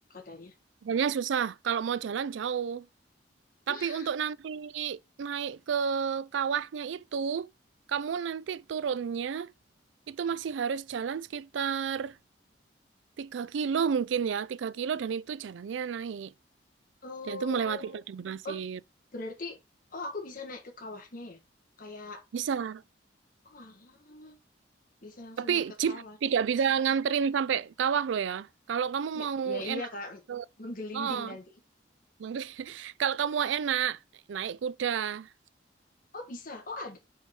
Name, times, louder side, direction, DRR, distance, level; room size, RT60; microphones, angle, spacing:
voice 1, 0.1-0.5 3.7-4.1 17.0-18.0 18.4-18.6 19.1-19.6 19.9-21.4 21.8-22.2 23.4-24.3 25.0-26.2 29.1-30.2 30.6-31.6 36.1-37.0, left 2 dB, 50° left, 1.6 m, -41 dB
voice 2, 0.8-2.9 3.7-7.5 7.9-9.5 10.1-12.2 13.2-16.3 17.2-18.8 22.3-22.8 25.4-29.8 30.3-30.4 30.9-31.4 32.2-34.0 34.3-35.3, right 7 dB, 90° right, 0.4 m, -30 dB
5.6 x 4.7 x 4.3 m
head